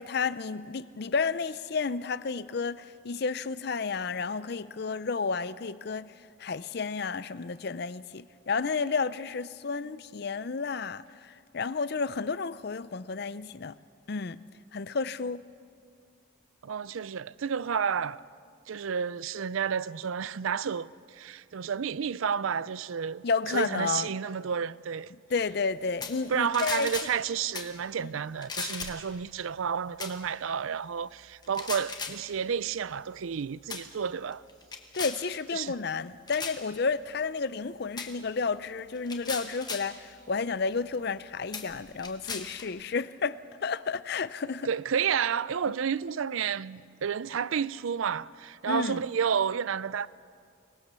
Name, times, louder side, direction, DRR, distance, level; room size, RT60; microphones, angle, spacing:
voice 1, 0.0-6.1 6.4-13.7 14.1-14.4 14.7-15.4 23.2-24.1 25.3-26.9 28.0-28.1 34.9-44.7 48.7-49.0, left 4 dB, 55° left, 0.5 m, -31 dB
voice 2, 16.6-18.2 18.7-23.2 23.5-25.1 26.3-34.4 35.5-35.7 44.6-50.1, right 7 dB, 85° right, 0.5 m, -31 dB
sound 1, 26.0-26.2 26.5-27.1 27.5-27.7 28.4-29.1 30.0-30.2 31.4-32.2 33.0-33.3 33.7-33.9 34.3-35.2 36.3-36.6 38.0-38.1 38.9-39.9 40.7-40.8 41.5-42.7, left 5 dB, 20° left, 1.4 m, -37 dB
24.0 x 19.0 x 6.9 m
head